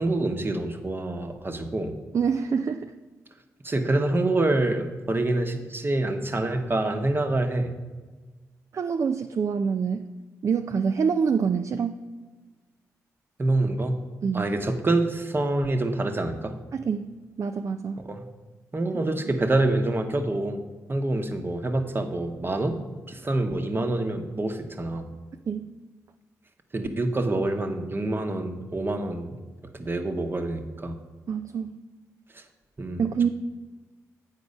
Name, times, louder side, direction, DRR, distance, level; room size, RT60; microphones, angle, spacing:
voice 1, 0.0-1.9 3.6-7.7 13.4-14.0 14.3-16.5 18.0-18.2 18.7-20.6 20.9-22.8 23.1-25.1 26.7-29.4 29.7-30.9 32.3-32.4 32.8-33.0, right 2 dB, 35° right, 5 dB, 1.0 m, -26 dB
voice 2, 2.1-2.9 8.7-10.1 10.4-12.0 14.2-14.5 16.7-17.1 17.4-18.0 18.9-19.0 25.5-25.7 31.3-31.7 33.0-33.3, right 6 dB, 50° right, 7 dB, 0.4 m, -26 dB
8.2 x 4.5 x 5.4 m, 1.3 s
supercardioid pair, 50°, 7 cm